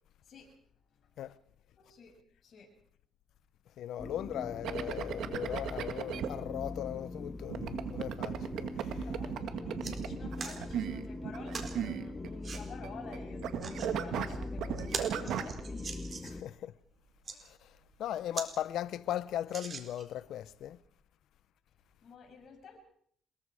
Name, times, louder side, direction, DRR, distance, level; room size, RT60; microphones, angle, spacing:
voice 1, 0.2-0.6 0.9-1.3 1.8-2.7 8.9-16.4 22.0-22.8, left 5 dB, 60° left, 7.9 m, -50 dB
voice 2, 3.8-9.1 16.2-16.7 17.4-20.8, left 11 dB, 80° left, 0.9 m, -38 dB
sound 1, 4.0-16.4, left 2 dB, 20° left, 1.8 m, -42 dB
sound 2, 4.6-6.3 7.5-13.2 13.4-15.6, right 10 dB, 80° right, 1.9 m, -36 dB
sound 3, 9.1-9.3 9.6-10.0 10.4-10.6 11.5-11.8 12.4-12.6 13.4-13.9 14.4-14.5 14.8-16.4 17.1-17.4 17.9-18.0 18.3-18.5 18.9-19.0 19.5-20.2 20.9-21.0, right 5 dB, 45° right, 4.2 m, -41 dB
27.0 x 22.0 x 5.0 m
cardioid pair, 90°, 0 cm